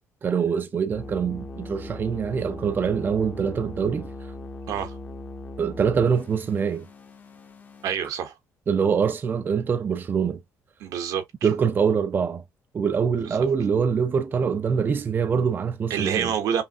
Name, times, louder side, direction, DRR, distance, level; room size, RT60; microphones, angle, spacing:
voice 1, 0.2-4.1 5.6-6.8 8.7-10.4 11.4-12.4 12.7-16.3, right 6 dB, 35° right, 0.5 m, -24 dB
sound 1, 0.9-8.0, left 2 dB, 30° left, 0.9 m, -39 dB
voice 2, 7.8-8.3 10.8-11.5 13.2-13.5 15.9-16.6, right 8 dB, 80° right, 1.1 m, -27 dB
5.5 x 2.5 x 2.4 m
cardioid pair, 105°, 6 cm